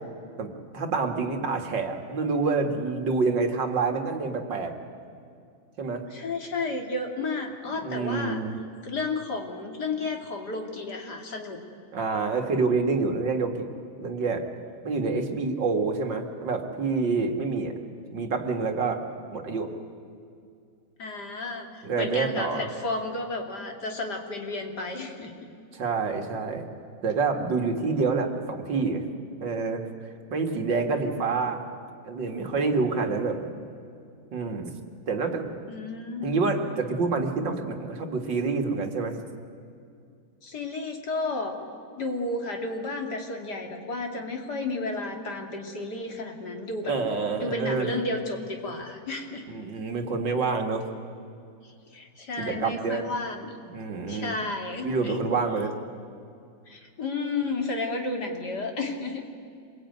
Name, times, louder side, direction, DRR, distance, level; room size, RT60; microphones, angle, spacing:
voice 1, 0.4-4.7 5.8-6.0 7.7-8.6 11.9-13.7 14.0-14.5 14.8-17.7 18.1-19.0 19.3-19.7 21.8-22.7 25.7-26.7 27.0-29.1 29.4-29.8 30.3-31.6 32.0-33.5 34.3-34.7 35.1-35.6 36.2-39.2 46.9-47.9 49.5-50.8 52.4-53.0 53.7-54.4 54.8-55.7, right 4 dB, 65° right, 5 dB, 2.5 m, -27 dB
voice 2, 6.1-8.4 8.8-11.6 21.0-21.7 22.0-25.5 35.7-36.5 40.4-41.6 42.0-46.9 47.4-49.4 51.9-53.5 54.1-55.2 56.7-59.3, left 3 dB, 55° left, 3 dB, 3.0 m, -32 dB
26.5 x 22.0 x 9.4 m, 2.4 s
omnidirectional pair, 2.2 m